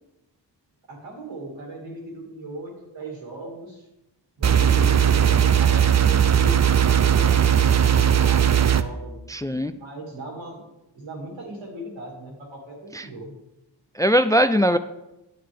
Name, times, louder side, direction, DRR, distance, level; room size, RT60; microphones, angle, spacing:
voice 1, 0.9-3.9 4.4-9.2 9.7-10.7 10.9-13.3, right 1 dB, 85° right, -1 dB, 2.7 m, -38 dB
sound 1, 4.4-8.8, right 9 dB, 40° right, 0.6 m, -18 dB
voice 2, 9.3-9.7 12.9-13.0 14.0-14.8, equal, 10° left, 11 dB, 0.3 m, -20 dB
9.4 x 8.5 x 3.6 m, 0.94 s
cardioid pair, 50°, 44 cm